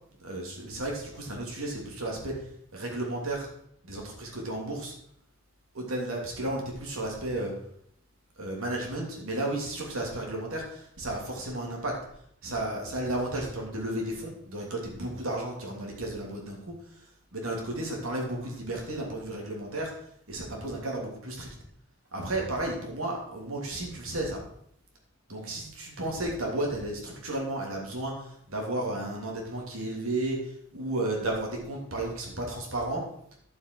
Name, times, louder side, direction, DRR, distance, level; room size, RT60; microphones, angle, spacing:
voice 1, 0.2-2.4 2.7-3.5 3.8-4.9 5.7-7.5 8.4-12.0 12.4-16.8 17.3-19.9 20.3-21.5 22.1-24.4 25.3-33.1, right 1 dB, 80° right, -1 dB, 2.9 m, -33 dB
11.5 x 7.5 x 4.6 m, 0.70 s
head